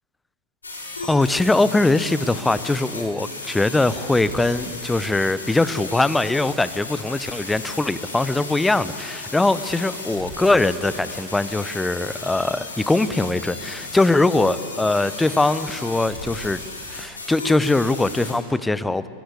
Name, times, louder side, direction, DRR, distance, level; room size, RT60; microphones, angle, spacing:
sound 1, 0.6-18.3, left 2 dB, 75° left, 5.8 m, -35 dB
voice 1, 1.0-16.6 16.9-19.1, left 2 dB, 5° left, 16 dB, 0.8 m, -21 dB
27.0 x 22.0 x 8.3 m, 2.3 s
figure-of-eight pair, 90°, 0 cm